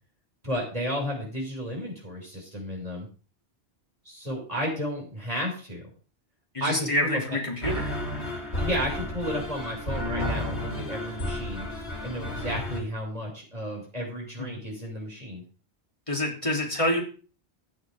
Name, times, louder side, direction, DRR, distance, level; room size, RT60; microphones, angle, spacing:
voice 1, 0.4-3.1 4.0-5.9 6.6-7.4 8.6-11.7 12.0-15.4, equal, 35° right, -2 dB, 6.7 m, -32 dB
voice 2, 6.5-8.3 14.4-14.5 16.1-17.0, left 1 dB, 30° left, -1 dB, 3.6 m, -28 dB
sound 1, 7.6-12.8, left 1 dB, 85° left, 2.9 m, -32 dB
15.5 x 9.4 x 3.7 m, 0.37 s
omnidirectional pair, 1.1 m